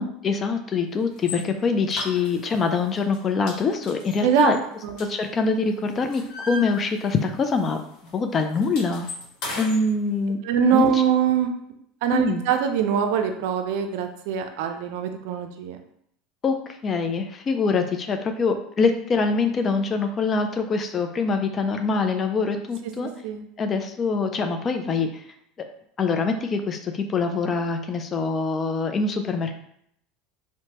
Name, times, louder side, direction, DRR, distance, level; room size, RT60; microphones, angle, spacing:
voice 1, 0.0-4.6 5.0-7.8 8.1-9.1 9.6-10.4 10.7-11.0 12.1-12.4 16.4-16.6 16.8-23.1 23.6-25.2 26.0-29.6, left 4 dB, 35° left, 6 dB, 0.3 m, -24 dB
sound 1, 1.2-1.4 1.9-2.6 3.0-3.2 3.5-5.5 5.8-7.3 7.6-7.8 8.1-9.8, left 2 dB, 60° left, 1.0 m, -36 dB
voice 2, 10.4-11.5 12.0-15.8 23.2-23.4, right 8 dB, 70° right, 6 dB, 0.4 m, -23 dB
2.7 x 2.1 x 2.9 m, 0.72 s
supercardioid pair, 95°, 0 cm